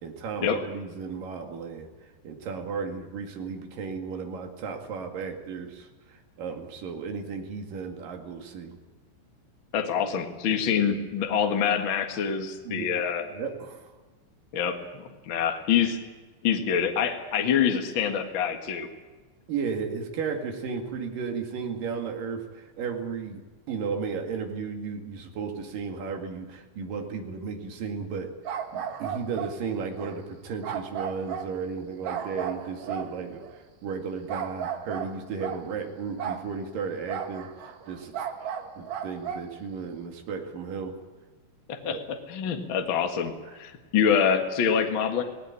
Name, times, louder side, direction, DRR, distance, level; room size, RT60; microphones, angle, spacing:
voice 1, 0.0-1.9 2.2-8.8 12.6-12.9 13.3-13.9 19.5-28.3 28.7-38.2 38.5-41.0 41.8-42.0, right 5 dB, 55° right, 3 dB, 3.4 m, -34 dB
voice 2, 9.7-13.2 14.5-16.0 16.4-18.9 41.7-45.2, left 7 dB, 90° left, 5 dB, 1.0 m, -26 dB
sound 1, 28.4-29.6 30.0-30.2 30.6-31.5 32.0-33.6 34.3-35.6 36.2-36.5 37.1-39.5, right 8 dB, 90° right, 1.5 m, -34 dB
18.5 x 18.0 x 9.8 m, 1.3 s
omnidirectional pair, 5.4 m